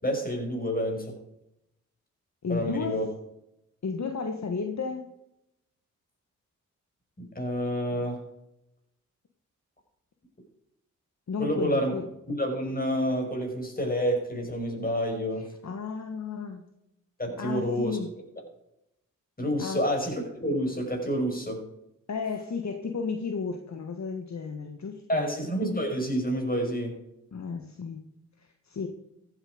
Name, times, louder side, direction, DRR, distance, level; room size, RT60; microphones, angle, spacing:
voice 1, 0.0-1.1 2.5-3.1 7.2-8.2 11.4-11.9 12.3-15.5 17.2-18.0 19.4-21.6 25.1-26.9, equal, 25° left, 2 dB, 6.0 m, -28 dB
voice 2, 2.4-3.1 3.8-5.0 11.3-12.1 15.4-16.6 17.4-18.1 19.6-19.8 22.1-25.3 27.3-28.0 28.4-28.9, left 5 dB, 55° left, 5 dB, 1.5 m, -33 dB
14.5 x 9.1 x 5.1 m, 0.84 s
cardioid pair, 50°, 33 cm